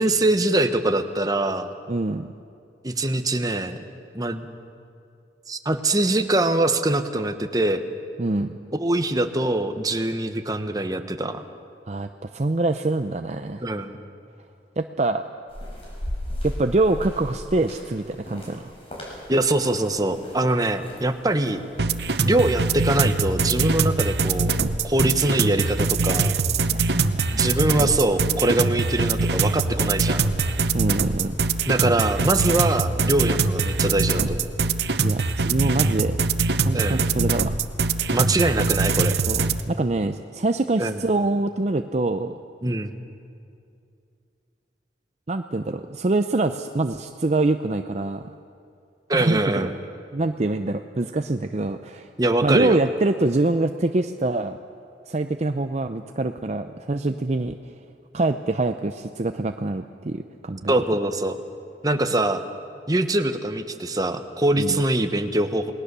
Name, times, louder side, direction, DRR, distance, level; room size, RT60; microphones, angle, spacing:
voice 1, 0.0-1.7 2.8-3.8 4.1-4.5 5.5-7.8 8.7-11.4 13.6-14.0 19.3-21.6 22.2-24.5 24.8-26.4 27.3-30.2 31.7-34.5 36.7-37.0 38.1-39.1 40.8-41.0 42.6-42.9 49.1-49.7 52.2-52.8 60.7-61.4 61.8-62.4 62.9-65.7, right 1 dB, 20° right, 8 dB, 1.1 m, -23 dB
voice 2, 1.9-2.3 8.2-8.5 11.9-13.6 14.8-15.2 16.4-18.6 26.7-27.6 30.7-31.3 35.0-36.2 36.7-37.6 39.3-42.3 45.3-48.2 49.1-49.7 50.1-52.1 52.4-54.6 55.1-57.6 58.1-60.7 64.6-64.8, right 2 dB, 40° right, 7 dB, 0.6 m, -25 dB
sound 1, 15.5-32.7, equal, 35° left, 5.6 m, -40 dB
sound 2, 21.8-39.6, right 4 dB, 65° right, 0.9 m, -23 dB
28.5 x 20.0 x 6.8 m, 2.5 s
head